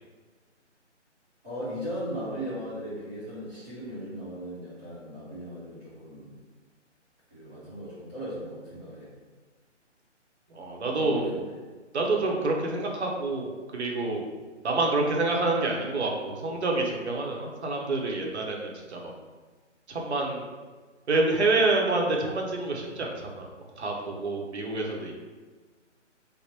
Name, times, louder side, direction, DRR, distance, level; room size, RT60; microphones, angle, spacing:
voice 1, 1.4-6.3 7.3-9.1 10.9-11.4, equal, 10° right, -13 dB, 0.8 m, -37 dB
voice 2, 10.5-11.2 11.9-14.3 14.6-19.1 19.9-20.5 21.1-23.5 23.8-25.2, right 2 dB, 65° right, 0 dB, 0.9 m, -27 dB
3.4 x 2.1 x 4.2 m, 1.4 s
hypercardioid pair, 160°, 36 cm